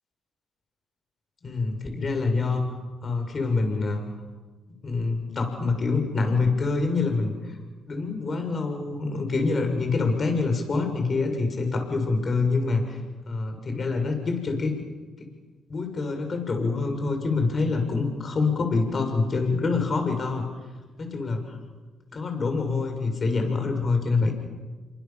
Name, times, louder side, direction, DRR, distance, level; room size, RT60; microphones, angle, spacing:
voice 1, 1.4-2.7 3.0-4.0 4.8-7.6 7.9-13.0 13.3-14.8 15.2-15.3 15.7-20.4 21.0-21.6 22.1-24.3, left 3 dB, 40° left, 4 dB, 6.9 m, -26 dB
29.0 x 25.5 x 7.5 m, 1.3 s
cardioid pair, 90°, 0 cm